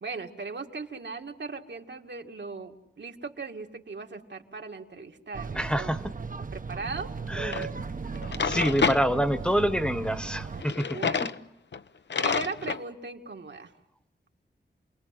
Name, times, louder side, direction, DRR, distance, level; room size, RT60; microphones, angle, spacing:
voice 1, 0.0-5.9 6.5-7.1 10.8-11.3 12.2-13.7, right 4 dB, 70° right, 4 dB, 2.3 m, -38 dB
sound 1, 5.3-10.6, right 5 dB, 45° right, 1.0 m, -36 dB
voice 2, 5.5-6.0 7.3-7.8 8.4-11.3, equal, 5° left, 10 dB, 1.1 m, -27 dB
Drawer open or close, 7.5-7.7 8.2-9.0 10.6-11.4 11.7-11.8 12.1-12.8, left 5 dB, 75° left, 0.9 m, -28 dB
29.0 x 20.5 x 7.8 m, 0.86 s
wide cardioid pair, 80°, 19 cm